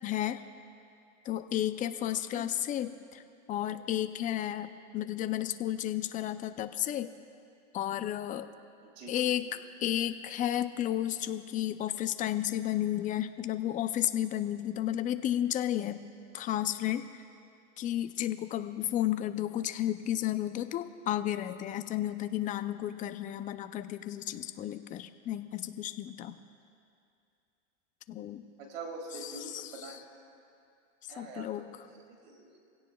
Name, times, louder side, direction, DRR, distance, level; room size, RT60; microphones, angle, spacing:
voice 1, 0.0-0.4 1.2-3.2 3.5-4.7 4.9-7.1 7.7-8.5 9.1-9.5 9.8-16.0 16.3-17.2 17.8-26.4 28.1-28.4 29.2-29.6 31.2-31.7, left 12 dB, 20° left, 10 dB, 0.4 m, -32 dB
voice 2, 2.3-2.6 8.8-9.3 28.6-30.0 31.1-32.6, right 3 dB, 80° right, 1 dB, 3.2 m, -45 dB
24.5 x 16.5 x 2.3 m, 2.5 s
supercardioid pair, 125°, 38 cm